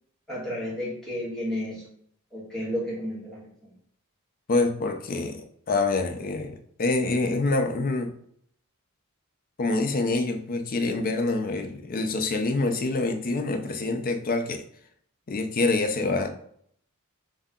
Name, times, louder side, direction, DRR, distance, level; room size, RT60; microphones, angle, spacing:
voice 1, 0.3-1.8 2.3-3.7, left 1 dB, ahead, -7 dB, 1.4 m, -32 dB
voice 2, 4.5-8.1 9.6-14.6 15.3-16.3, left 3 dB, 40° left, 6 dB, 0.5 m, -26 dB
3.3 x 2.7 x 3.6 m, 0.66 s
head